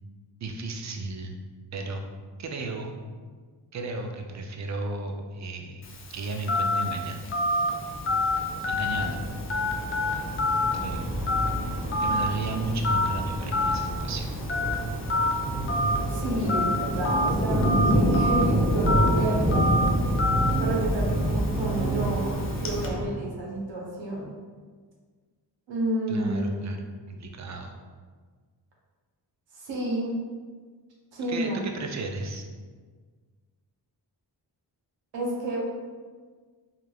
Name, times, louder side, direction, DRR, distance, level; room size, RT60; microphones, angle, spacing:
voice 1, 0.4-1.4 1.7-2.0 2.4-2.9 3.7-5.9 6.1-7.5 8.7-9.3 10.7-11.1 12.0-14.3 26.1-27.7 31.3-32.4, right 2 dB, 40° right, 3 dB, 0.4 m, -34 dB
Telephone, 5.8-22.9, left 2 dB, 30° left, 0.4 m, -29 dB
sound 1, 7.2-23.1, right 1 dB, 20° right, 0.9 m, -28 dB
voice 2, 16.1-19.6 20.6-24.3 25.7-26.8 29.5-30.2 31.1-31.7 35.1-35.7, right 1 dB, 80° right, -4 dB, 0.8 m, -30 dB
3.1 x 2.4 x 2.3 m, 1.5 s
cardioid pair, 60°, 45 cm